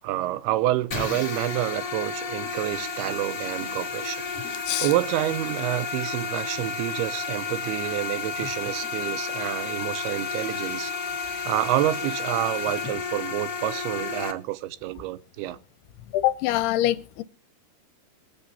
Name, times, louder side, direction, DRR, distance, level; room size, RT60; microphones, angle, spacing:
voice 1, 0.0-4.2 4.8-10.9 11.5-15.6, right 15 dB, 80° right, 2.6 m, -28 dB
sound 1, 0.9-14.3, left 5 dB, 35° left, 1.4 m, -32 dB
voice 2, 16.1-17.2, left 14 dB, 80° left, 2.6 m, -24 dB
23.0 x 8.5 x 2.8 m
omnidirectional pair, 4.7 m